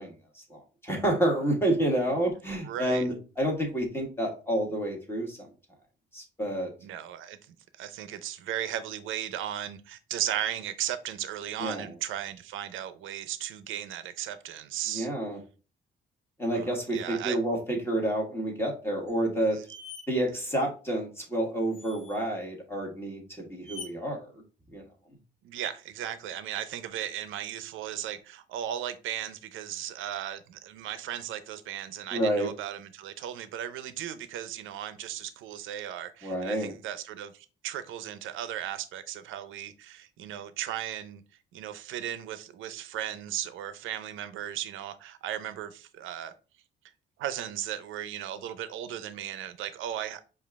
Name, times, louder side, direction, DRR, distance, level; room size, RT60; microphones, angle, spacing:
voice 1, 0.0-5.5 6.1-6.7 11.6-11.9 14.9-15.4 16.4-19.7 20.1-24.3 24.7-24.8 32.1-32.5 36.2-36.7, right 1 dB, 10° left, 1.5 m, -29 dB
voice 2, 2.6-3.1 6.8-15.1 16.5-17.4 19.5-19.6 25.4-41.2 41.5-46.3 47.2-50.2, right 11 dB, 85° right, 0.6 m, -36 dB
sound 1, 19.1-19.2 19.7-20.1 21.7-22.3 23.6-23.9, left 4 dB, 40° left, 1.9 m, -43 dB
5.0 x 2.5 x 3.5 m
cardioid pair, 90°, 20 cm